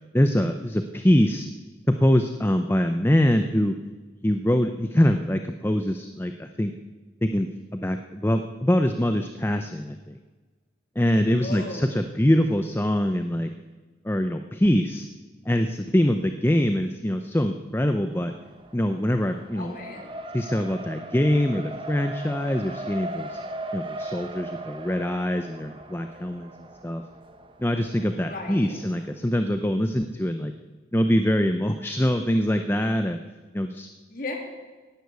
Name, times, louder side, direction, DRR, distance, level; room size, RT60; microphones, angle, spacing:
voice 1, 0.1-1.5 1.9-3.8 4.2-6.7 7.2-10.2 11.0-13.5 14.0-15.1 15.5-18.3 18.7-19.7 20.3-23.4 23.7-26.5 26.8-27.0 27.6-30.5 30.9-33.2 33.5-33.9, equal, 10° left, 7 dB, 0.6 m, -24 dB
voice 2, 11.3-11.9 19.5-20.2 28.2-28.8 34.1-34.4, left 2 dB, 50° left, 1 dB, 3.0 m, -36 dB
Race car auto racing, 18.1-29.1, right 1 dB, 25° right, 1.0 m, -39 dB
17.5 x 11.5 x 6.9 m, 1.3 s
head